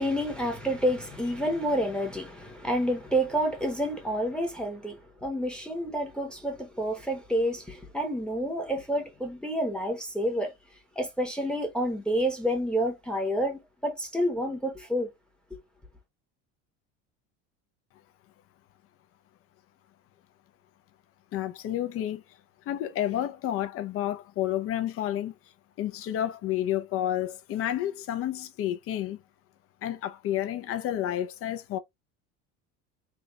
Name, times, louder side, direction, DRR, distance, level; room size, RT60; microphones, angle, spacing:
voice 1, 0.0-10.5 11.0-15.1 15.5-15.6, equal, 5° left, 0.9 m, -29 dB
voice 2, 21.3-22.2 22.7-25.3 25.8-29.2 29.8-31.8, left 12 dB, 40° left, 0.6 m, -30 dB
3.4 x 2.4 x 3.9 m
cardioid pair, 140°, 35 cm